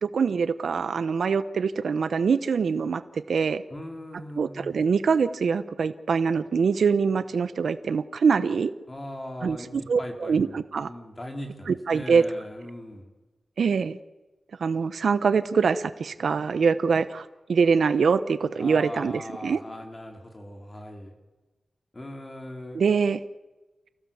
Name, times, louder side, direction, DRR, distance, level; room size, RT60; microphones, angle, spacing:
voice 1, 0.0-3.6 4.4-8.7 9.4-10.9 11.7-12.2 13.6-14.0 14.6-19.6 22.7-23.2, right 5 dB, 75° right, 13 dB, 0.8 m, -24 dB
voice 2, 3.7-4.8 8.9-13.1 18.6-21.2 21.9-22.8, left 1 dB, 20° left, 3 dB, 3.5 m, -39 dB
28.5 x 16.5 x 7.1 m, 1.1 s
wide cardioid pair, 140°, 0 cm